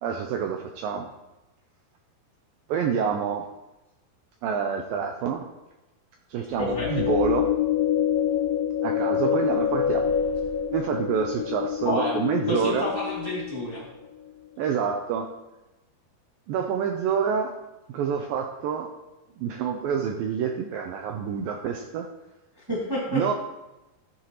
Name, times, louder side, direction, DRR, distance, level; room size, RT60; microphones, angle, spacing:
voice 1, 0.0-1.1 2.7-3.5 4.4-5.5 6.3-7.6 8.8-10.1 10.7-12.9 14.6-15.3 16.5-17.6 17.9-18.9 19.4-22.1 23.1-23.3, right 7 dB, 90° right, 4 dB, 2.0 m, -27 dB
sound 1, 6.5-13.9, left 9 dB, 75° left, 2.5 m, -26 dB
voice 2, 6.6-7.0 11.8-12.2 12.5-13.8 22.7-23.3, left 1 dB, 20° right, -7 dB, 0.6 m, -29 dB
15.0 x 9.5 x 3.0 m, 1.0 s
omnidirectional pair, 4.8 m